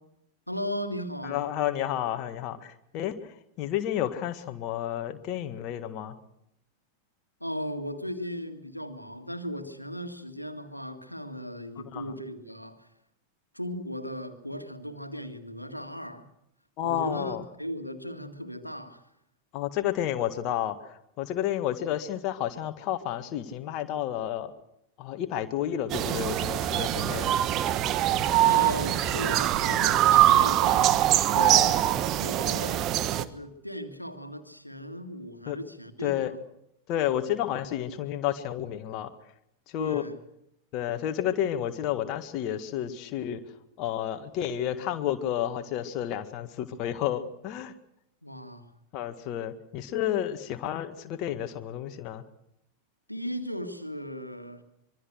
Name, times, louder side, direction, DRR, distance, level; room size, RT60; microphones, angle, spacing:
voice 1, 0.5-1.4 7.4-12.9 13.5-16.3 16.8-19.0 28.4-31.8 32.1-32.9 33.2-36.4 39.8-40.1 48.2-48.7 53.1-54.6, equal, 90° left, 7 dB, 2.0 m, -37 dB
voice 2, 1.2-6.2 11.9-12.0 16.8-17.4 19.5-24.5 25.0-27.3 31.4-31.7 35.5-35.6 36.0-36.3 36.9-39.1 39.7-40.0 40.7-43.4 43.8-47.7 48.9-52.2, left 11 dB, 40° left, 7 dB, 1.8 m, -31 dB
sound 1, 25.9-33.2, right 13 dB, 35° right, 1.3 m, -23 dB
25.5 x 23.5 x 6.5 m, 0.79 s
figure-of-eight pair, 90°, 0 cm